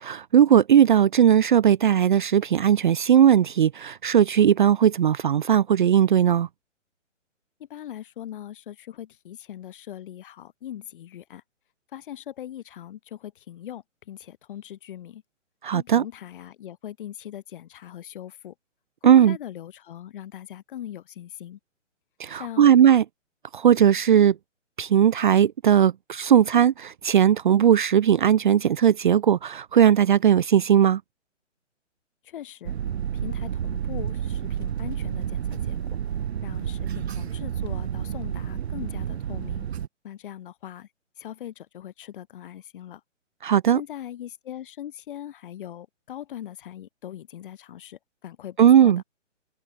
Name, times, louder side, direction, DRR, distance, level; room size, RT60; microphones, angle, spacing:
voice 1, 0.0-6.5 15.6-16.0 19.0-19.4 22.2-23.0 23.5-24.4 24.8-31.0 43.4-43.8 48.6-49.0, right 9 dB, 40° right, 0.5 m, -18 dB
voice 2, 7.6-11.4 11.9-15.2 15.7-18.5 19.0-21.6 22.3-22.8 32.2-32.8 33.2-36.0 36.4-39.7 40.0-40.9 41.2-43.0 43.7-48.9, left 11 dB, 45° left, 1.9 m, -40 dB
sound 1, 32.6-39.9, right 9 dB, 55° right, 1.3 m, -30 dB
hypercardioid pair, 155°, 38 cm